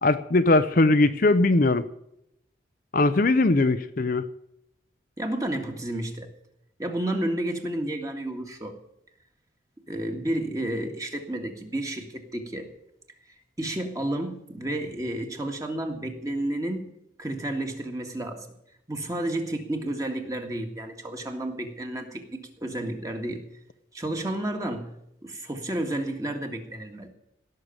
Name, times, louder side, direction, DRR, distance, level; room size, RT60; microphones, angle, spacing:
voice 1, 0.0-1.9 2.9-4.2, left 2 dB, 50° left, 10 dB, 0.7 m, -20 dB
voice 2, 5.2-6.3 6.8-8.8 9.9-12.7 13.6-16.9 17.2-18.5 18.9-23.4 23.9-24.9 25.2-27.1, right 1 dB, 20° right, 4 dB, 1.9 m, -31 dB
17.5 x 6.6 x 8.9 m, 0.78 s
head